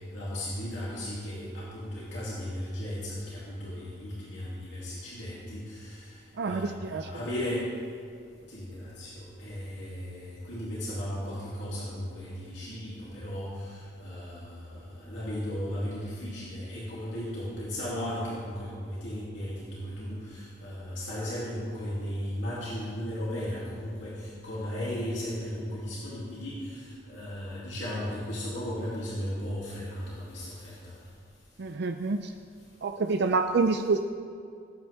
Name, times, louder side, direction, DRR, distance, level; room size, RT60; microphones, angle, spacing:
voice 1, 0.1-7.7 8.5-30.9, equal, 80° left, -8 dB, 2.9 m, -36 dB
voice 2, 6.4-7.1 31.6-32.3 32.8-34.0, right 4 dB, 65° right, 6 dB, 0.5 m, -27 dB
18.5 x 8.8 x 3.6 m, 2.4 s
head